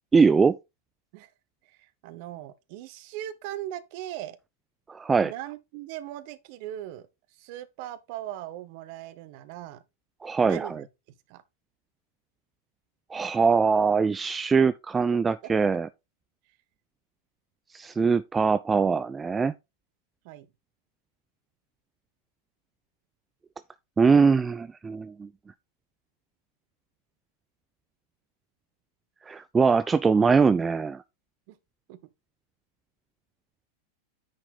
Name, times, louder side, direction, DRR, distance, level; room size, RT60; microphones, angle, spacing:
voice 1, 0.1-0.6 4.9-5.3 10.2-10.8 13.1-15.9 17.7-19.5 24.0-25.3 29.3-31.0, right 5 dB, 15° right, 0.3 m, -22 dB
voice 2, 1.6-4.4 5.2-7.1 7.4-9.8 10.4-10.9 11.3-11.4 15.1-15.2 20.2-20.5 31.5-31.6 31.9-32.0, right 13 dB, 45° right, 0.9 m, -39 dB
9.5 x 4.4 x 4.0 m
figure-of-eight pair, 90°, 0 cm